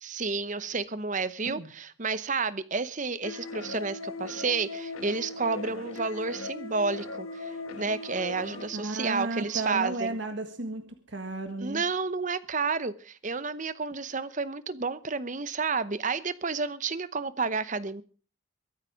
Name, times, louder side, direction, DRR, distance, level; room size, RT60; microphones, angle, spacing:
voice 1, 0.0-10.1 11.6-18.0, right 4 dB, 35° right, 15 dB, 0.8 m, -31 dB
sound 1, 3.2-8.7, left 3 dB, 80° left, 1.2 m, -38 dB
sound 2, 6.7-10.8, left 2 dB, 25° left, 3.9 m, -55 dB
voice 2, 8.7-11.8, right 2 dB, 55° right, 6 dB, 1.7 m, -34 dB
23.5 x 8.2 x 5.1 m, 0.39 s
head